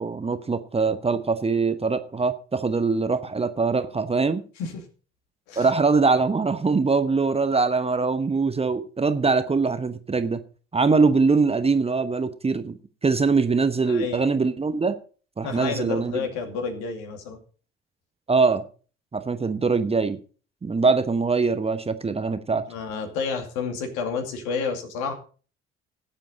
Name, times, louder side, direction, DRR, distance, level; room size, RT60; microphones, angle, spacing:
voice 1, 0.0-4.4 5.6-10.4 10.7-12.8 13.0-15.0 15.4-16.2 18.3-18.6 19.1-20.2 20.6-22.6, right 4 dB, 20° right, 10 dB, 1.0 m, -22 dB
voice 2, 13.8-14.2 15.4-17.4 22.7-25.1, left 5 dB, 60° left, 5 dB, 2.6 m, -30 dB
17.5 x 7.5 x 4.1 m, 0.38 s
figure-of-eight pair, 50°, 32 cm